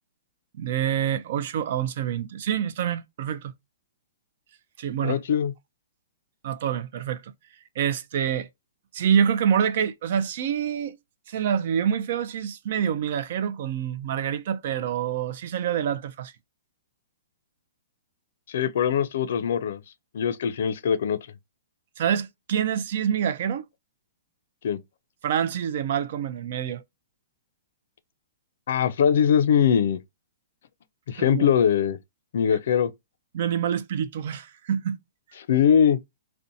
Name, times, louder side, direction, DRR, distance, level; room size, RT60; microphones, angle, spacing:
voice 1, 0.6-3.5 4.8-5.2 6.4-7.3 7.8-8.5 8.9-11.0 11.3-16.3 22.0-23.6 25.2-26.8 31.2-31.5 33.3-35.0, right 8 dB, 45° right, 0.4 m, -26 dB
voice 2, 5.0-5.5 18.5-19.8 20.1-21.2 24.6-24.8 28.7-30.0 31.1-32.0 32.3-32.9 35.5-36.0, left 8 dB, 55° left, 0.4 m, -21 dB
2.6 x 2.1 x 2.6 m
hypercardioid pair, 170°, 0 cm